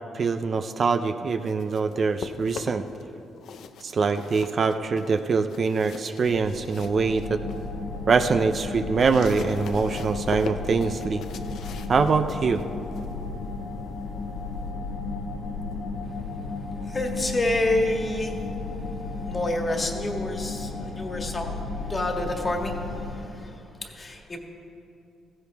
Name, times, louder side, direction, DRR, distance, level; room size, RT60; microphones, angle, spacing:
voice 1, 0.1-2.9 3.8-7.4 8.1-11.2 11.9-12.6, right 4 dB, 45° right, 8 dB, 0.5 m, -24 dB
sound 1, 1.2-3.0 3.4-7.7 8.1-14.7, left 6 dB, 70° left, 0.7 m, -41 dB
sound 2, 6.2-23.1, left 3 dB, 90° left, 2.8 m, -34 dB
voice 2, 16.8-18.5 19.2-24.4, left 1 dB, 30° left, 2 dB, 1.7 m, -28 dB
15.5 x 15.0 x 3.5 m, 2.7 s
cardioid pair, 90°, 0 cm